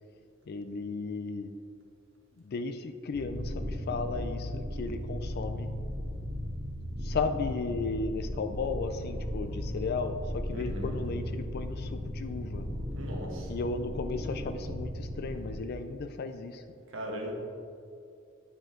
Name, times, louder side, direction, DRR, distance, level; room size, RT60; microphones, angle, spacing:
voice 1, 0.5-1.5 2.4-5.7 7.0-12.7 13.5-16.6, left 4 dB, 50° left, 8 dB, 0.4 m, -35 dB
sound 1, 3.1-15.6, equal, 20° right, 1.6 m, -36 dB
voice 2, 10.5-11.0 13.0-13.5 16.9-17.3, right 1 dB, 70° right, -1 dB, 1.4 m, -38 dB
9.5 x 5.1 x 3.7 m, 2.4 s
head